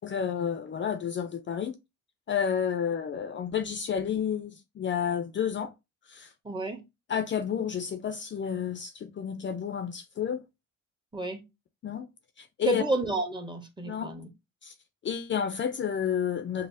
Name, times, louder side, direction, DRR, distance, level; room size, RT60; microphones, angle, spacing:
voice 1, 0.0-1.7 2.3-5.7 6.1-6.3 7.1-10.4 11.8-12.1 12.4-12.8 13.8-14.1 14.6-14.7 15.0-16.7, left 8 dB, 40° left, 0.4 m, -30 dB
voice 2, 6.4-6.8 11.1-11.4 12.6-14.3, right 2 dB, 15° right, 0.9 m, -31 dB
5.3 x 2.0 x 2.6 m
cardioid pair, 90°, 30 cm